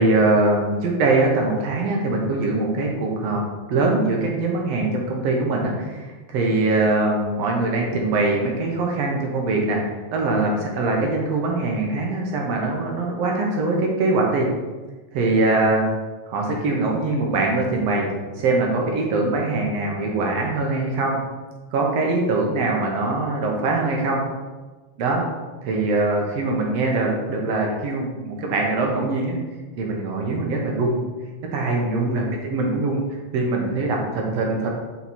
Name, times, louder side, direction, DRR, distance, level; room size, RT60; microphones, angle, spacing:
voice 1, 0.0-3.4 3.7-9.8 10.1-14.5 15.1-15.8 16.3-18.1 18.4-21.2 21.7-24.2 25.0-25.2 25.6-29.4 29.8-31.0 31.5-33.0 33.3-34.7, right 2 dB, 65° right, 0 dB, 2.0 m, -22 dB
6.2 x 4.4 x 4.2 m, 1.3 s
omnidirectional pair, 3.4 m